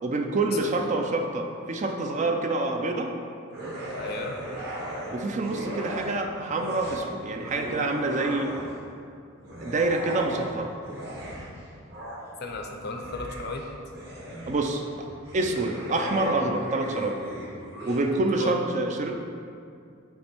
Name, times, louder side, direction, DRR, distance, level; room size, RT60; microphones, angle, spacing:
voice 1, 0.0-3.1 5.1-8.5 9.6-10.7 14.5-15.1 15.3-17.2 17.9-19.3, right 2 dB, 35° right, 3 dB, 0.4 m, -27 dB
sound 1, 3.5-6.2 6.5-8.9 9.4-18.0, right 1 dB, 50° right, 1.3 m, -37 dB
voice 2, 4.0-4.3 12.4-13.6 18.1-18.5, left 2 dB, 50° left, 2 dB, 0.6 m, -35 dB
7.3 x 3.4 x 4.4 m, 2.4 s
head